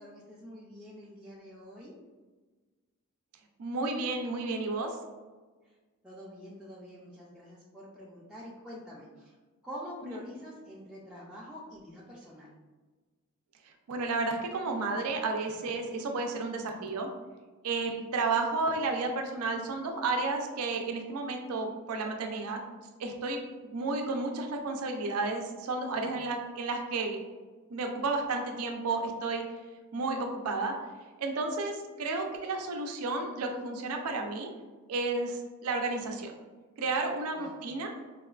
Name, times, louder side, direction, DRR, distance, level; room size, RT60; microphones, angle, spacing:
voice 1, 0.0-1.9 5.6-5.8 6.0-9.4 9.6-12.5 25.9-26.2 37.3-37.6, equal, 5° right, -7 dB, 0.3 m, -46 dB
voice 2, 3.6-4.9 10.0-10.2 13.9-17.1 17.6-22.6 23.0-23.4 23.7-27.2 27.7-29.4 29.9-30.7 31.2-34.5 34.9-36.3 36.8-37.9, right 3 dB, 85° right, 3 dB, 0.4 m, -32 dB
3.9 x 2.2 x 2.3 m, 1.3 s
head